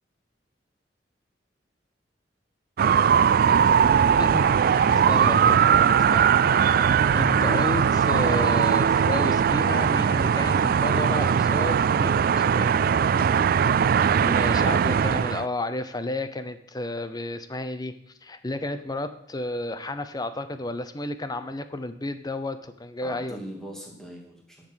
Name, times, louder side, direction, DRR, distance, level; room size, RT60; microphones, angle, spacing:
sound 1, 2.8-15.5, right 7 dB, 55° right, 0.3 m, -20 dB
voice 1, 4.2-5.7 6.1-12.7 14.2-17.9 18.2-23.4, left 1 dB, 20° left, 11 dB, 0.7 m, -32 dB
voice 2, 13.0-13.7 23.0-24.7, equal, 5° left, -2 dB, 2.6 m, -41 dB
10.5 x 7.6 x 6.3 m, 0.73 s
head